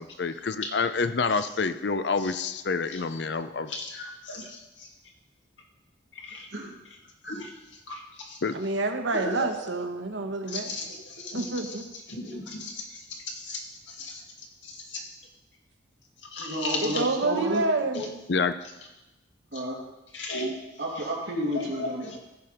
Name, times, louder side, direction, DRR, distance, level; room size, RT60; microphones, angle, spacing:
voice 1, 0.0-3.9 8.4-8.6 18.3-18.5, left 4 dB, 65° left, 12 dB, 0.6 m, -28 dB
voice 2, 3.7-4.6 6.2-6.5 7.2-7.5 7.9-8.0 8.3-8.4 9.1-9.5 10.5-11.5 12.1-12.8 13.4-14.2 14.9-15.0 16.3-16.9 17.4-17.5 17.9-18.1 20.1-20.5 21.8-21.9, left 2 dB, 90° left, 0 dB, 2.2 m, -35 dB
voice 3, 8.5-10.8 11.3-11.8 16.8-18.0, right 2 dB, 85° right, 6 dB, 1.1 m, -28 dB
voice 4, 16.4-17.6 19.5-19.8 20.8-22.2, right 1 dB, 60° right, -3 dB, 2.7 m, -31 dB
15.0 x 5.9 x 5.0 m, 1.0 s
head